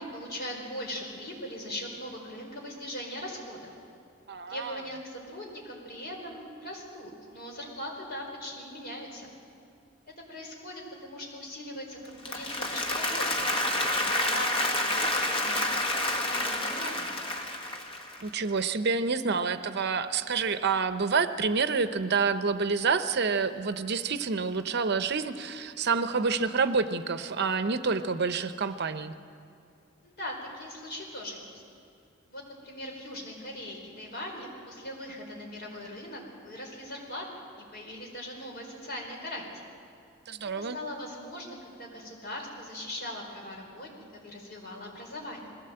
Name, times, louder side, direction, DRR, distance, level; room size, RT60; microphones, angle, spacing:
voice 1, 0.0-3.7 4.5-9.3 10.3-17.1 30.0-31.6 32.3-37.3 37.7-39.5 40.5-45.5, left 1 dB, 50° left, 0 dB, 4.7 m, -40 dB
voice 2, 4.3-4.8 18.2-29.1 40.3-40.8, right 5 dB, 55° right, 11 dB, 0.7 m, -28 dB
Applause, 12.0-18.3, left 1 dB, 25° left, 1.6 m, -29 dB
21.0 x 16.0 x 7.8 m, 2.5 s
head